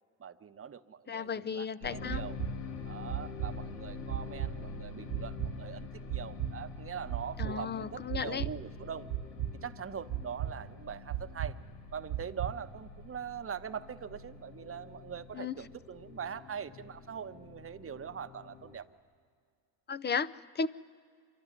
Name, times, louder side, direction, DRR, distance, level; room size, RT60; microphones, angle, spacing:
voice 1, 0.2-2.3 2.8-9.1 9.6-11.6 11.9-18.9, right 7 dB, 30° right, 10 dB, 0.9 m, -42 dB
voice 2, 1.1-2.2 7.4-8.5 15.3-15.5 19.9-20.7, left 5 dB, 20° left, 17 dB, 0.5 m, -34 dB
Machine clank, 1.8-18.8, left 4 dB, 90° left, 2.0 m, -46 dB
sound 1, 2.1-2.5 3.1-3.5 4.1-4.5 5.1-5.5 6.1-6.5 7.1-7.5 8.1-8.5 9.1-9.5 10.1-10.5 11.1-11.5 12.1-12.5, right 12 dB, 65° right, 1.3 m, -34 dB
25.5 x 12.5 x 9.9 m, 2.1 s
supercardioid pair, 75°, 49 cm